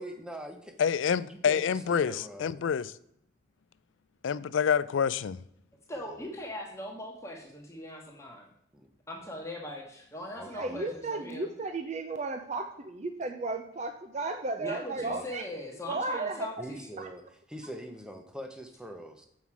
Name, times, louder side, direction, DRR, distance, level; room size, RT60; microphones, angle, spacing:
voice 1, 0.0-0.8 1.2-2.6 8.7-8.9 10.3-10.9 14.9-15.3 16.6-17.2 17.5-19.3, right 1 dB, 5° right, 0.8 m, -43 dB
voice 2, 0.8-2.9 4.2-5.4, left 7 dB, 70° left, 0.4 m, -27 dB
voice 3, 5.9-8.5 9.1-11.5 14.6-16.9, left 1 dB, 15° left, 1.1 m, -40 dB
voice 4, 10.5-15.4 15.9-16.5 17.0-17.1, right 3 dB, 35° right, 0.5 m, -34 dB
7.4 x 5.6 x 4.7 m
head